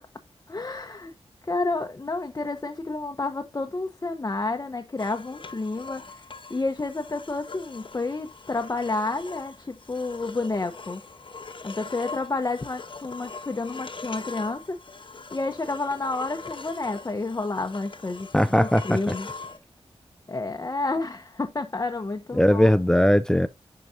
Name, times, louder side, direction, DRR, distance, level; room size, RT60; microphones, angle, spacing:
voice 1, 0.5-1.1 1.4-11.0 11.6-14.8 15.3-19.3 20.3-22.7, left 3 dB, 30° left, 0.8 m, -30 dB
sound 1, 5.0-19.6, left 4 dB, 50° left, 1.1 m, -42 dB
voice 2, 18.3-19.1 22.3-23.5, equal, 5° left, 0.5 m, -19 dB
10.5 x 4.8 x 2.6 m
wide cardioid pair, 115°, 11 cm